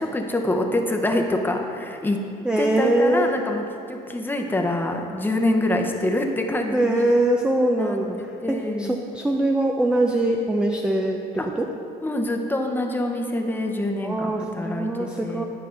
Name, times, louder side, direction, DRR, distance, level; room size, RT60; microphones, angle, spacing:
voice 1, 0.0-2.2 2.6-7.1 7.8-9.0 11.4-11.5 12.0-15.5, left 1 dB, 10° left, 2 dB, 0.8 m, -26 dB
voice 2, 2.4-3.4 6.7-8.3 8.8-11.2 11.6-11.7 14.0-15.4, right 1 dB, 5° right, 2 dB, 0.4 m, -22 dB
11.0 x 5.4 x 3.8 m, 2.7 s
cardioid pair, 110°, 17 cm